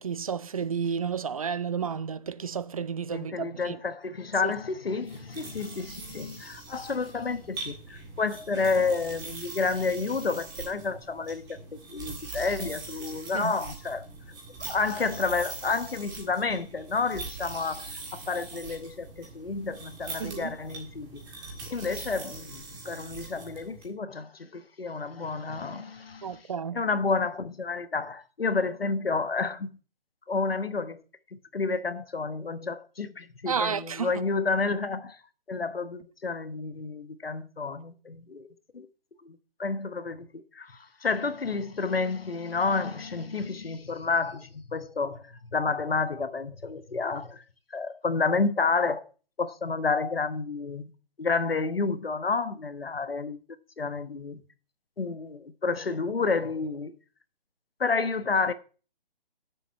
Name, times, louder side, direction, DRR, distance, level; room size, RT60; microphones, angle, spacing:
voice 1, 0.0-3.8 4.4-4.5 13.3-13.5 20.2-20.6 26.2-26.8 33.5-34.2, right 6 dB, 40° right, 0.5 m, -31 dB
voice 2, 3.1-14.0 14.6-21.2 21.7-26.4 26.7-29.7 30.3-31.0 31.3-35.2 35.5-38.5 38.7-38.9 39.2-47.4 47.7-49.0 49.4-50.9 51.2-53.4 53.8-54.4 55.0-56.9 57.8-58.5, left 4 dB, 80° left, 1.2 m, -30 dB
sound 1, 5.0-23.9, right 3 dB, 15° right, 1.8 m, -42 dB
7.5 x 7.1 x 8.2 m
figure-of-eight pair, 150°, 29 cm